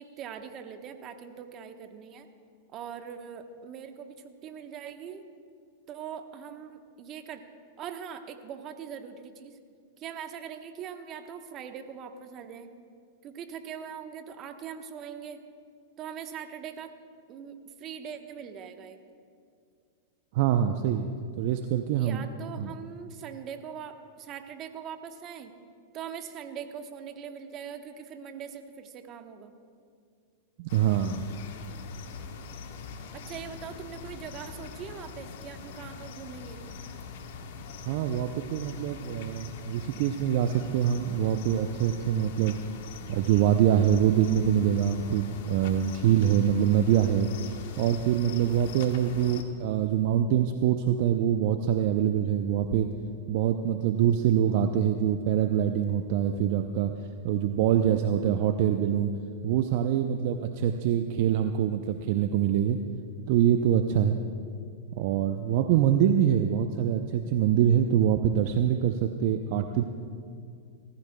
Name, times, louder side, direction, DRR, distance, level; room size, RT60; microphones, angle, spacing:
voice 1, 0.0-2.3 2.7-5.2 5.9-7.4 7.8-9.6 10.0-12.7 13.2-15.4 16.0-16.9 17.3-19.0 22.0-25.5 25.9-29.5 33.1-36.6, right 8 dB, 40° right, 7 dB, 1.0 m, -41 dB
voice 2, 20.3-21.1 21.4-22.2 22.6-22.7 30.6-31.2 37.9-42.6 43.1-47.3 47.8-52.9 53.3-56.9 57.2-59.1 59.4-62.8 63.3-64.2 65.0-69.8, right 9 dB, 55° right, 7 dB, 0.5 m, -24 dB
sound 1, 30.7-49.4, left 5 dB, 65° left, 1.1 m, -42 dB
19.5 x 14.5 x 2.2 m, 2.2 s
hypercardioid pair, 105°, 0 cm